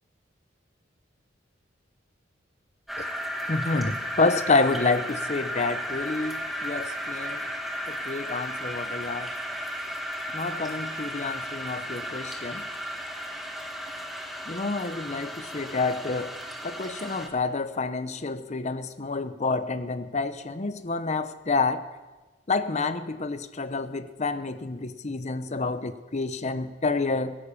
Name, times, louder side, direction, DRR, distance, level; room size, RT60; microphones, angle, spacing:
sound 1, 2.9-17.3, equal, ahead, 1.5 m, -34 dB
voice 1, 3.5-7.4 7.9-9.3 10.3-12.6 14.5-16.3 16.6-21.8 22.5-27.4, left 3 dB, 40° left, 11 dB, 0.8 m, -28 dB
17.0 x 10.5 x 7.0 m, 1.2 s
head